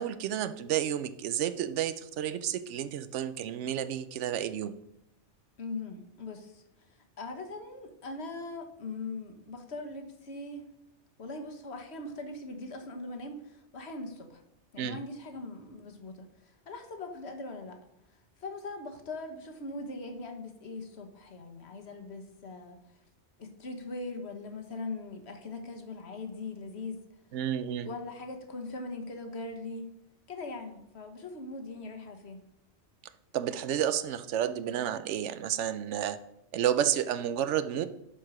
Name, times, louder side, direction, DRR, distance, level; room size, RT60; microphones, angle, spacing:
voice 1, 0.0-4.7 14.8-15.0 27.3-27.9 33.3-36.2 36.5-37.9, right 10 dB, 85° right, 12 dB, 0.9 m, -31 dB
voice 2, 5.6-6.6 7.2-10.6 11.2-14.4 14.7-17.8 18.4-22.8 23.4-27.0 27.8-29.9 30.3-32.4, left 3 dB, 65° left, 5 dB, 1.5 m, -40 dB
11.5 x 4.6 x 4.8 m, 0.82 s
omnidirectional pair, 1.2 m